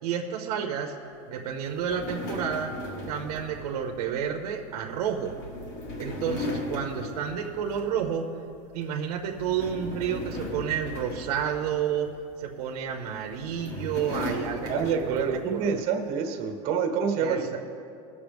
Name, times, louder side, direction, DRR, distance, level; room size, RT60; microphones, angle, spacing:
voice 1, 0.0-0.9 1.3-2.7 3.1-5.3 6.0-8.3 8.7-12.1 12.4-14.7 15.1-15.8 17.2-17.6, right 8 dB, 85° right, 2 dB, 0.9 m, -30 dB
sound 1, 1.6-8.2 8.5-8.8 9.2-12.2 13.0-15.5, left 1 dB, 45° left, 1.6 m, -37 dB
voice 2, 14.7-17.4, right 6 dB, 50° right, 4 dB, 1.3 m, -27 dB
20.0 x 6.9 x 3.5 m, 2.6 s
supercardioid pair, 160°, 19 cm